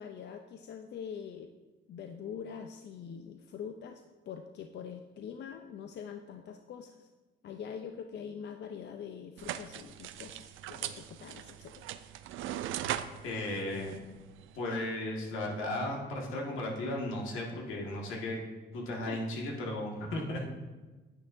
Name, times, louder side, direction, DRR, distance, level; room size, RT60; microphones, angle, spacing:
voice 1, 0.0-1.5 1.9-7.1 7.4-11.8 19.1-19.2, left 7 dB, 60° left, 6 dB, 0.6 m, -44 dB
sound 1, 9.4-14.6, right 11 dB, 80° right, 0.4 m, -40 dB
voice 2, 13.2-14.0 14.6-18.4 18.7-20.5, left 1 dB, 85° left, -1 dB, 1.8 m, -35 dB
9.8 x 8.5 x 2.6 m, 1.2 s
cardioid pair, 90°, 20 cm